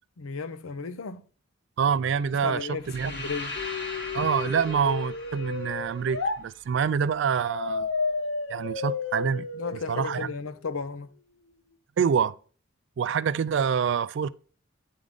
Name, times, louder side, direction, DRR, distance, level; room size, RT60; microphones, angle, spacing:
voice 1, 0.2-1.2 2.4-3.6 9.5-11.1, left 5 dB, 90° left, 0.6 m, -34 dB
voice 2, 1.8-2.7 2.9-3.1 4.1-7.9 8.5-9.5 9.9-10.3 12.0-12.4 13.0-14.3, right 7 dB, 60° right, 0.3 m, -26 dB
sound 1, 2.8-6.8, left 2 dB, 50° left, 1.8 m, -39 dB
sound 2, 3.5-6.4 7.4-10.4, left 4 dB, 70° left, 1.0 m, -32 dB
9.2 x 3.7 x 3.6 m
head